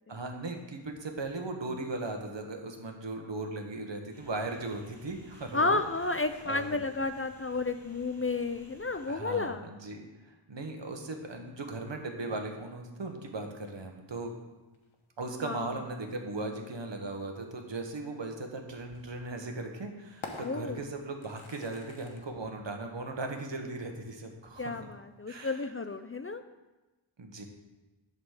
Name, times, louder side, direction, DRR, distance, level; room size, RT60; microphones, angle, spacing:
voice 1, 0.1-5.8 6.4-6.8 9.1-10.1 10.5-14.3 15.2-24.8 25.3-25.6 27.2-27.4, right 2 dB, 65° right, 4 dB, 1.3 m, -38 dB
sound 1, 4.1-9.1, right 1 dB, 5° left, 3.3 m, -56 dB
voice 2, 5.5-9.6 15.4-15.7 20.4-20.8 24.6-26.4, left 3 dB, 30° left, 9 dB, 0.4 m, -32 dB
sound 2, 11.1-26.3, left 3 dB, 90° left, 1.2 m, -53 dB
11.5 x 4.1 x 6.5 m, 1.1 s
wide cardioid pair, 85°, 46 cm